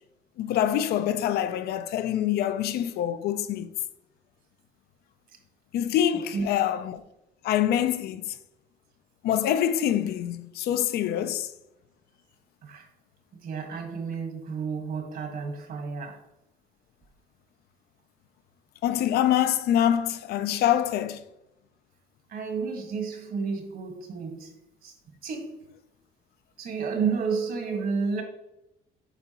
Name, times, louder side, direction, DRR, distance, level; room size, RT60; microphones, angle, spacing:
voice 1, 0.4-3.7 5.7-7.0 7.4-8.3 9.2-11.5 18.8-21.2, left 10 dB, 70° left, 0.5 m, -25 dB
voice 2, 6.1-6.5 12.6-12.9 13.4-16.2 22.3-24.5 24.8-24.9 25.2-25.6 26.6-28.2, right 5 dB, 60° right, 1.5 m, -31 dB
8.0 x 4.5 x 2.9 m
cardioid pair, 110°, 17 cm